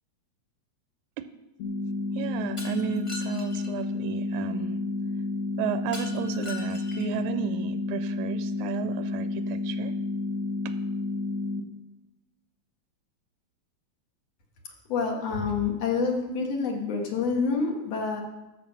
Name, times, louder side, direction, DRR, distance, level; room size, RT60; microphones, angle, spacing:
sound 1, 1.6-11.6, left 3 dB, 80° left, 0.7 m, -31 dB
voice 1, 2.2-4.8 5.6-9.9 10.7-10.8, right 10 dB, 90° right, 12 dB, 2.0 m, -33 dB
Shatter, 2.6-3.7 5.9-7.2, left 3 dB, 35° left, 0.5 m, -42 dB
voice 2, 14.9-18.2, left 4 dB, 60° left, 2 dB, 2.6 m, -27 dB
13.0 x 7.6 x 5.9 m, 0.99 s
omnidirectional pair, 3.4 m